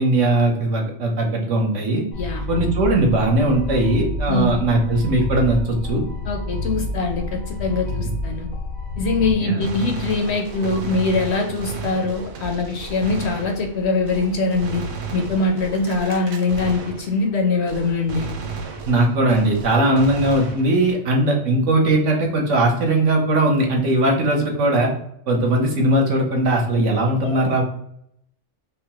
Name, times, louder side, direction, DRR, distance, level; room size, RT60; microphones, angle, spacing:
voice 1, 0.0-2.0 2.5-6.0 9.4-9.6 18.9-24.9 25.3-27.6, right 1 dB, 65° right, 1 dB, 1.2 m, -19 dB
sound 1, 2.1-9.3, left 2 dB, 85° left, 1.3 m, -28 dB
voice 2, 4.3-4.6 6.3-8.5 9.0-14.8 15.1-18.3 27.2-27.4, left 3 dB, 60° left, 3 dB, 0.8 m, -23 dB
Gunshot gunfire, 9.6-17.4 17.7-21.0, right 4 dB, 85° right, 1.2 m, -33 dB
4.9 x 2.2 x 2.9 m, 0.73 s
omnidirectional pair, 1.4 m